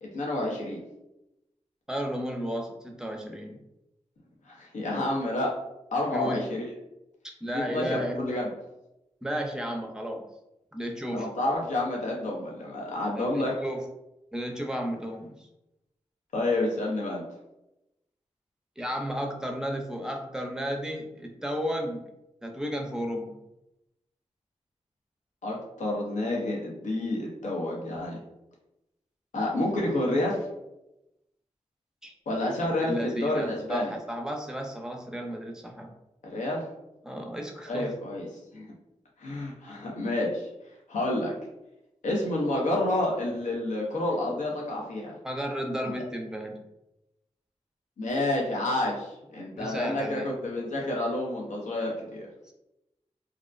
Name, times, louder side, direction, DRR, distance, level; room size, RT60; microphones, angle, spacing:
voice 1, 0.0-0.8 4.5-5.5 5.9-6.6 7.5-8.5 11.1-13.5 16.3-17.2 25.4-28.2 29.3-30.5 32.3-33.9 36.3-36.7 37.6-38.3 38.5-38.7 39.2-40.5 40.9-41.3 42.0-45.1 48.0-52.3, left 1 dB, 90° left, -2 dB, 0.6 m, -29 dB
voice 2, 1.9-3.6 6.1-6.4 7.4-8.4 9.2-10.2 10.7-11.3 13.1-13.8 14.3-15.3 18.8-22.0 22.4-23.4 32.0-32.1 32.8-35.9 37.0-37.9 45.2-46.6 49.6-50.3 52.5-52.6, equal, 5° right, 2 dB, 0.5 m, -33 dB
2.4 x 2.1 x 2.5 m, 0.89 s
cardioid pair, 45°, 12 cm